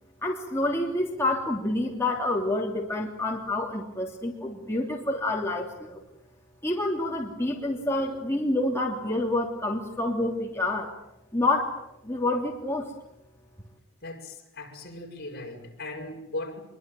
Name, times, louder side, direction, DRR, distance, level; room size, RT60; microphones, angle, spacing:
voice 1, 0.2-6.0 6.6-10.9 11.3-11.7 12.0-12.9, left 2 dB, 15° left, -1 dB, 3.1 m, -28 dB
voice 2, 14.0-16.6, left 2 dB, 50° left, 1 dB, 6.6 m, -38 dB
26.0 x 23.0 x 9.3 m, 0.82 s
head